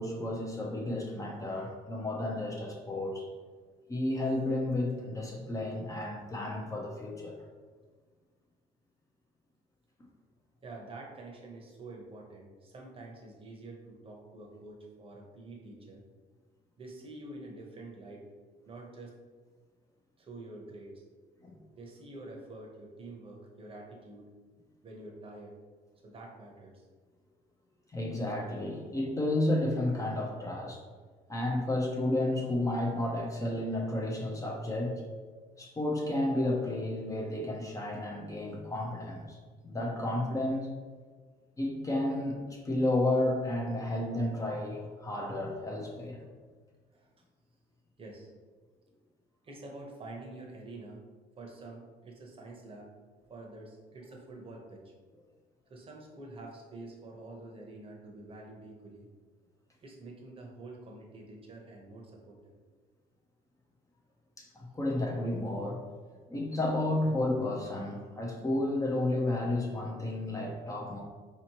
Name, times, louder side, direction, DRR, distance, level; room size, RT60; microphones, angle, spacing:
voice 1, 0.0-3.3 3.9-7.4 21.4-21.6 27.9-30.8 31.3-34.9 35.6-39.4 39.6-40.7 41.6-46.2 64.4-65.8 66.3-71.0, left 1 dB, 20° left, -1 dB, 0.6 m, -32 dB
voice 2, 10.6-16.0 16.8-18.3 18.7-19.1 20.2-21.0 21.8-24.3 24.8-25.6 26.0-26.8 46.9-47.1 48.0-48.3 49.4-51.0 51.4-52.9 53.3-54.8 55.7-59.1 59.8-62.5, right 2 dB, 35° right, -1 dB, 0.8 m, -47 dB
4.1 x 2.8 x 2.9 m, 1.5 s
cardioid pair, 110°, 17 cm